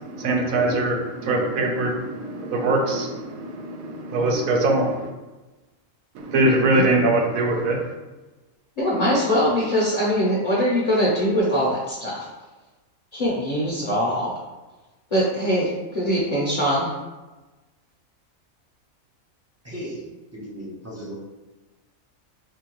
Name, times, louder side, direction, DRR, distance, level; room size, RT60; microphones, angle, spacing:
voice 1, 0.0-5.1 6.2-7.8, right 2 dB, 80° right, 1 dB, 1.0 m, -22 dB
voice 2, 8.8-12.3 13.1-14.3 15.1-16.9, equal, 40° left, -6 dB, 0.6 m, -22 dB
voice 3, 19.6-21.1, equal, 20° right, -6 dB, 0.4 m, -36 dB
4.5 x 2.3 x 2.9 m, 1.1 s
omnidirectional pair, 1.4 m